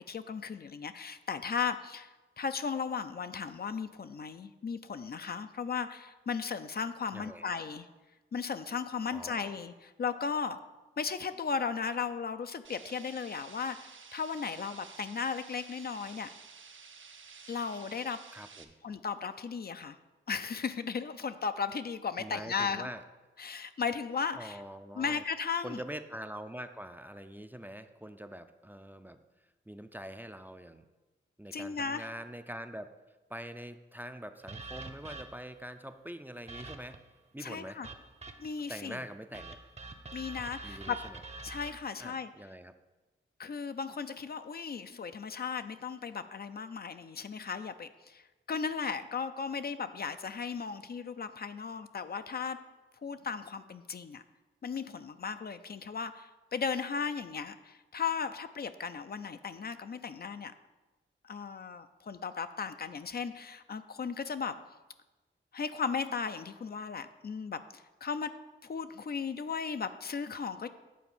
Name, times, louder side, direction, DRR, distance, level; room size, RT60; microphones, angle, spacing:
voice 1, 0.1-2.1 2.4-7.9 8.3-10.6 11.0-16.3 17.5-18.2 18.8-20.0 20.3-22.9 23.4-24.6 25.0-25.8 31.5-32.1 37.4-37.9 38.4-39.0 40.1-41.0 41.4-42.3 43.4-48.2 48.5-52.6 53.0-54.2 54.6-60.5 61.2-64.6 65.5-70.7, left 6 dB, 50° left, 10 dB, 0.4 m, -36 dB
voice 2, 7.1-7.5 9.1-9.6 18.3-18.7 22.2-23.0 24.3-25.2 25.6-29.2 29.7-30.8 31.4-32.9 33.3-37.0 37.3-37.8 38.7-39.6 40.6-41.2 42.0-42.7, equal, 10° right, 9 dB, 0.4 m, -44 dB
sound 1, 12.6-18.6, right 5 dB, 70° right, 0.7 m, -52 dB
sound 2, 34.5-35.6 36.5-37.1 37.8-38.6 39.3-41.7, right 3 dB, 30° right, 0.8 m, -45 dB
8.4 x 4.3 x 7.2 m, 1.2 s
wide cardioid pair, 80°, 21 cm